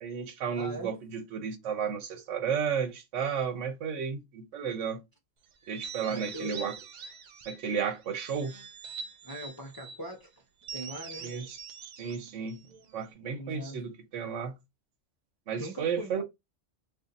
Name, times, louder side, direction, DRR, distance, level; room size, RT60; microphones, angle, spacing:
voice 1, 0.0-5.0 5.7-6.7 7.5-8.5 11.2-11.6 12.0-12.6 12.9-14.5 15.5-16.2, right 6 dB, 90° right, 1.1 m, -33 dB
voice 2, 0.5-0.9 6.1-6.6 9.2-10.3 10.7-11.4 13.3-13.8 15.6-16.2, right 1 dB, 25° left, 0.5 m, -41 dB
sound 1, 5.6-7.7 8.1-10.0 10.6-13.1, right 5 dB, 60° right, 0.5 m, -44 dB
2.7 x 2.4 x 3.8 m
omnidirectional pair, 1.2 m